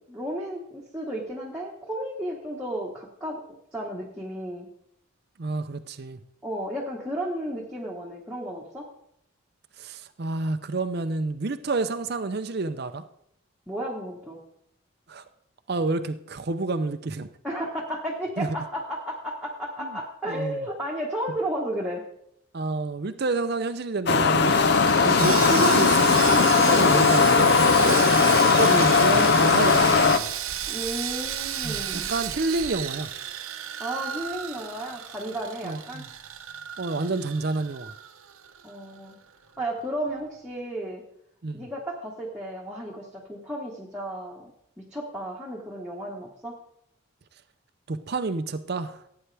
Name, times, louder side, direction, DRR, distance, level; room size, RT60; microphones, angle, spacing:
voice 1, 0.0-3.4 3.7-4.7 6.4-8.9 13.7-14.4 17.4-22.0 24.9-25.2 26.8-27.0 27.8-28.1 30.7-32.1 33.8-36.1 38.6-39.1 39.6-41.0 41.5-44.5 44.8-46.5, right 1 dB, 5° right, -4 dB, 1.3 m, -33 dB
voice 2, 5.4-6.2 9.8-13.0 15.1-15.2 15.7-17.3 18.4-18.6 19.8-19.9 20.3-20.6 22.5-24.6 25.0-27.6 28.4-30.3 31.6-33.1 35.6-36.1 36.8-37.9 41.4-41.7 47.9-49.0, right 3 dB, 50° right, 9 dB, 0.5 m, -29 dB
sound 1, 24.1-30.2, left 5 dB, 50° left, 0.6 m, -19 dB
Sawing, 24.5-38.7 39.0-39.1 39.6-39.7, right 10 dB, 85° right, 0.8 m, -33 dB
15.5 x 8.8 x 3.4 m, 0.74 s
head